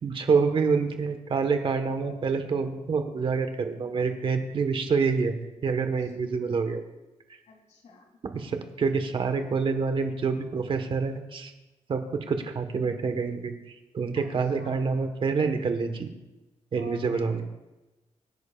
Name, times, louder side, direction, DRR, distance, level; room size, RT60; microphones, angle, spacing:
voice 1, 0.0-5.3 5.6-6.8 8.3-11.5 11.9-16.1 16.7-17.4, right 5 dB, 45° right, 7 dB, 1.4 m, -27 dB
voice 2, 5.8-6.1 7.5-8.1 14.1-14.3 14.5-15.0 16.8-17.4, left 4 dB, 75° left, 1 dB, 2.9 m, -48 dB
25.0 x 11.0 x 2.5 m, 1.1 s
wide cardioid pair, 150°, 12 cm